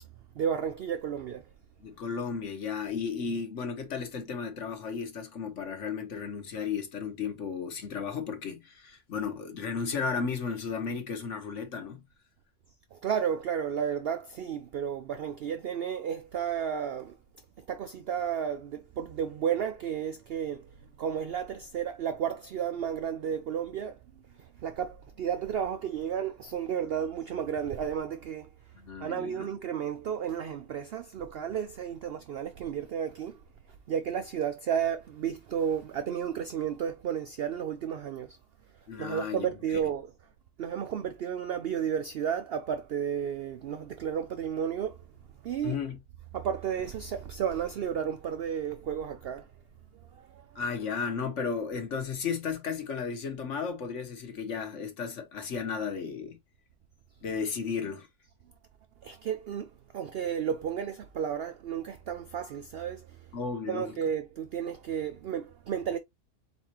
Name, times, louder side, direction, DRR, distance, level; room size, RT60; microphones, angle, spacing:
voice 1, 0.4-1.5 12.9-17.1 17.6-20.7 21.0-24.0 24.4-28.5 29.0-33.4 33.9-38.4 39.0-40.1 40.6-45.0 45.4-45.8 46.3-49.5 50.2-50.6 59.0-63.2 63.7-66.0, right 8 dB, 90° right, 0.5 m, -32 dB
voice 2, 1.8-12.0 28.7-29.5 38.9-39.5 45.6-46.0 50.5-56.4 57.2-58.1 63.3-64.0, left 6 dB, 55° left, 1.2 m, -34 dB
4.3 x 4.1 x 2.8 m
omnidirectional pair, 1.6 m